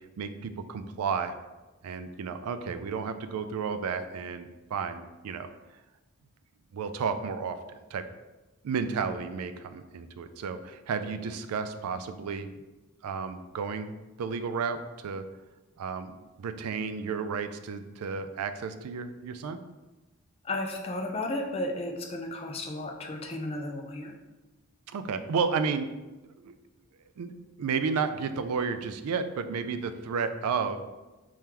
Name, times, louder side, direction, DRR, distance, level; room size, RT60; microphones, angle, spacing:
voice 1, 0.2-1.3 1.8-5.5 6.7-8.1 8.6-12.5 13.0-13.9 14.2-15.2 15.8-19.6 24.9-25.9 26.2-26.5 27.2-27.3 27.6-30.8, right 5 dB, 90° right, 10 dB, 0.4 m, -32 dB
voice 2, 20.4-24.1, left 1 dB, 25° left, 2 dB, 0.4 m, -33 dB
4.6 x 3.6 x 2.9 m, 1.1 s
head